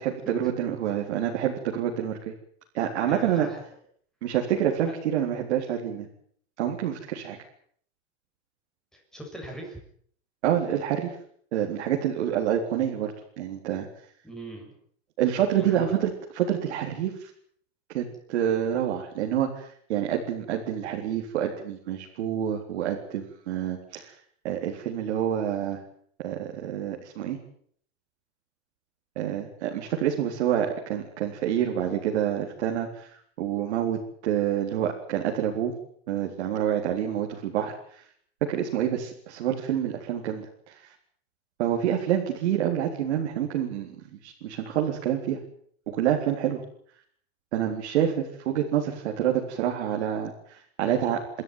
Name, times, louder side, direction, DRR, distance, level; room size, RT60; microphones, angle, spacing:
voice 1, 0.0-2.3 2.7-3.5 4.2-6.1 6.6-7.4 10.4-11.1 11.5-13.9 15.2-17.3 17.9-24.1 24.4-25.8 26.2-27.4 29.2-35.7 36.1-38.0 38.4-40.9 41.6-44.0 44.2-45.4 45.9-46.6 47.5-51.4, right 10 dB, 90° right, 0 dB, 4.1 m, -27 dB
voice 2, 3.1-3.6 8.9-9.8 14.2-14.7 15.6-15.8 30.6-30.7 50.8-51.0, right 1 dB, ahead, 0 dB, 6.9 m, -40 dB
29.5 x 13.0 x 9.3 m, 0.62 s
supercardioid pair, 165°, 33 cm